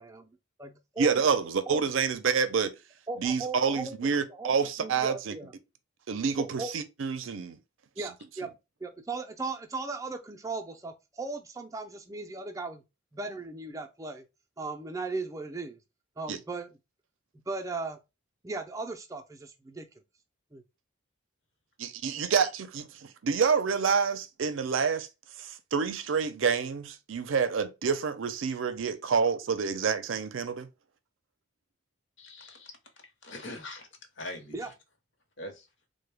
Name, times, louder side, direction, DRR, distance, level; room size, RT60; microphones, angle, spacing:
voice 1, 0.0-1.3 1.7-1.8 3.1-5.5 6.4-6.7 8.0-8.5 8.8-12.8 13.1-14.2 14.6-15.8 16.2-16.7 17.5-18.0 18.4-19.9 20.5-20.6 34.5-34.7, right 3 dB, 15° right, 0.4 m, -37 dB
voice 2, 1.0-2.7 3.2-5.4 6.1-7.6 16.3-16.4 21.8-25.1 25.4-30.7, right 5 dB, 70° right, 0.5 m, -28 dB
voice 3, 32.2-32.7 33.2-33.9 34.2-34.7 35.4-35.7, left 1 dB, 60° left, 0.8 m, -42 dB
3.8 x 2.1 x 3.3 m
head